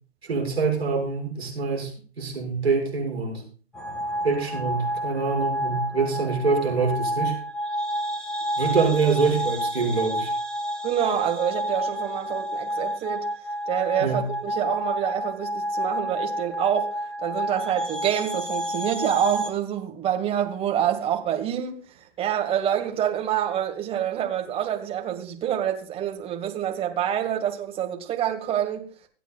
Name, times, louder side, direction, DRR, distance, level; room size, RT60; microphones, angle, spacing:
voice 1, 0.2-3.4 4.2-7.4 8.6-10.3 14.0-14.3, right 4 dB, 65° right, 6.6 m, -25 dB
sound 1, 3.7-19.5, equal, ahead, 1.7 m, -29 dB
voice 2, 10.8-13.3 13.7-21.8 22.2-28.9, right 10 dB, 15° right, 2.0 m, -27 dB
25.5 x 9.2 x 2.5 m
figure-of-eight pair, 115°, 34 cm